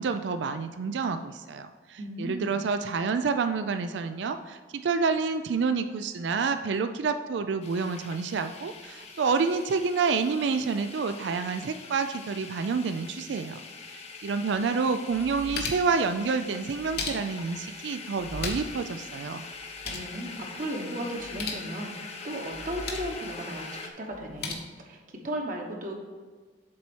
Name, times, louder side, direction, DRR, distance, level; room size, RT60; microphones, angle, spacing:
voice 1, 0.0-13.6 13.9-19.4, right 5 dB, 80° right, 9 dB, 0.4 m, -28 dB
voice 2, 2.0-2.5 19.8-25.0 25.2-25.9, right 1 dB, 50° right, 1 dB, 1.2 m, -35 dB
sound 1, 7.6-23.9, left 4 dB, 40° left, 0.7 m, -43 dB
sound 2, 14.5-14.6 15.1-16.0 16.7-17.5 18.2-18.8 19.1-19.2 19.5-20.1 21.2-21.7 22.5-23.2 24.1-24.5, left 3 dB, 65° left, 1.2 m, -36 dB
7.5 x 4.2 x 6.1 m, 1.4 s
head